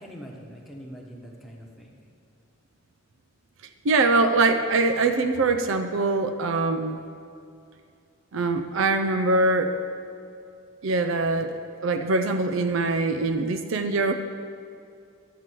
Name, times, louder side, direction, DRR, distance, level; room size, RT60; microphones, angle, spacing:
voice 1, 0.0-2.0 5.0-5.1, equal, ahead, -2 dB, 1.1 m, -43 dB
voice 2, 3.8-7.0 8.3-9.8 10.8-14.1, right 3 dB, 60° right, 7 dB, 0.5 m, -23 dB
12.0 x 7.5 x 4.5 m, 2.4 s
head